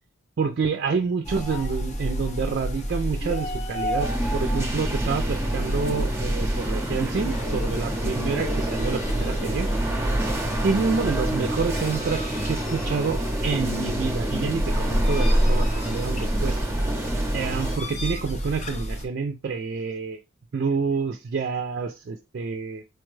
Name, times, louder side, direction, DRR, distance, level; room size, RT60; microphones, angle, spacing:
voice 1, 0.4-9.7 10.6-16.6 17.3-20.2 20.5-22.8, right 5 dB, 50° right, 0.4 m, -28 dB
sound 1, 1.2-19.0, equal, 35° left, 0.5 m, -28 dB
sound 2, 4.0-17.8, right 1 dB, 15° right, 0.6 m, -30 dB
4.5 x 2.2 x 3.1 m
head